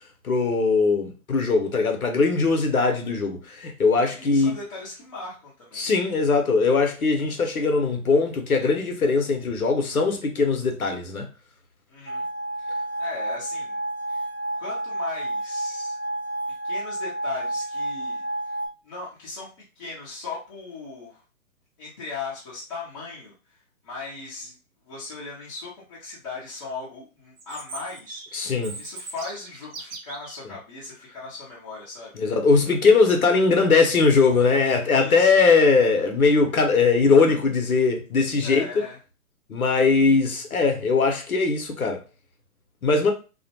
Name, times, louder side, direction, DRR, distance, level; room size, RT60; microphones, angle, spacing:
voice 1, 0.2-4.5 5.8-11.2 28.3-28.7 32.2-38.8 39.5-42.0 42.8-43.1, left 4 dB, 80° left, 0.8 m, -20 dB
voice 2, 4.0-6.0 11.9-12.3 13.0-13.8 14.1-14.3 14.5-16.0 16.6-18.6 18.8-19.5 19.7-21.2 21.8-23.6 23.8-24.6 24.8-32.2 34.9-35.3 38.4-39.0, left 4 dB, 25° left, 0.6 m, -38 dB
sound 1, 12.1-18.7, right 1 dB, 90° right, 0.6 m, -30 dB
Chirp tweet, 27.4-30.4, right 3 dB, 45° right, 0.8 m, -39 dB
2.4 x 2.1 x 2.7 m
figure-of-eight pair, 130°, 42 cm